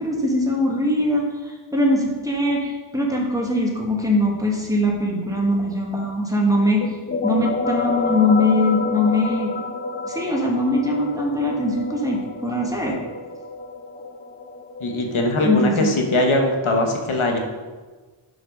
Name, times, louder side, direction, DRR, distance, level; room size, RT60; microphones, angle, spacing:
voice 1, 0.0-6.8 7.2-9.5 10.0-13.0 15.4-15.9, left 1 dB, 5° right, -2 dB, 1.4 m, -21 dB
sound 1, 6.8-16.2, left 3 dB, 25° left, 0.4 m, -30 dB
voice 2, 14.8-17.4, left 1 dB, 75° left, 3 dB, 1.1 m, -21 dB
5.9 x 5.0 x 5.1 m, 1.3 s
wide cardioid pair, 85°, 49 cm